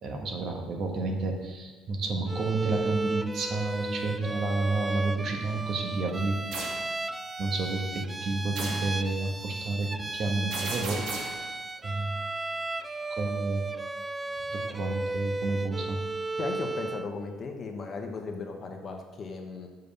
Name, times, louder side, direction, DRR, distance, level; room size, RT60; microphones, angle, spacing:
voice 1, 0.0-6.7 7.4-11.4 11.8-12.2 13.1-13.6 14.5-16.0, right 3 dB, 50° right, 2 dB, 1.3 m, -30 dB
Bowed string instrument, 2.3-17.1, right 2 dB, 15° right, 0.3 m, -35 dB
sound 1, 6.5-6.8 8.6-8.9 10.5-11.4, right 3 dB, 80° right, 2.0 m, -35 dB
voice 2, 16.4-19.7, left 4 dB, 35° left, 3 dB, 1.1 m, -36 dB
6.9 x 5.4 x 5.4 m, 1.4 s
cardioid pair, 120°, 0 cm